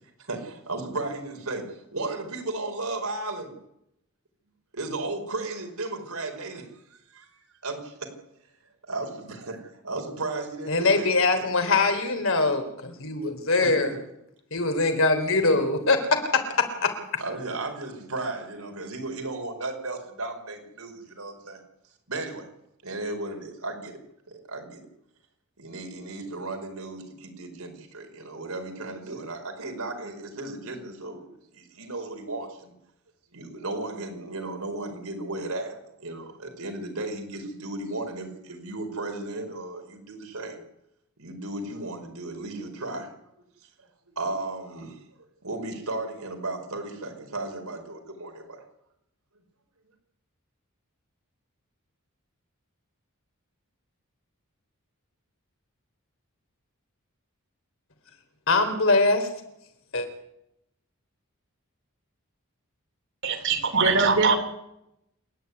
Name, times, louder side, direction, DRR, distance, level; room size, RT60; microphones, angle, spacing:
voice 1, 0.2-3.5 4.7-8.1 8.8-11.1 13.6-14.0 15.5-15.6 17.2-21.6 22.1-22.5 22.8-24.0 24.3-24.8 25.6-31.3 31.5-32.7 33.3-40.6 41.2-43.1 43.8-45.0 45.4-48.6, right 2 dB, 80° right, 4 dB, 4.9 m, -35 dB
voice 2, 10.7-13.9 14.5-16.9 58.5-59.3 59.9-60.1, left 3 dB, 60° left, 6 dB, 3.7 m, -23 dB
voice 3, 63.2-64.4, right 4 dB, 55° right, 6 dB, 3.3 m, -21 dB
28.5 x 10.5 x 9.6 m, 0.81 s
head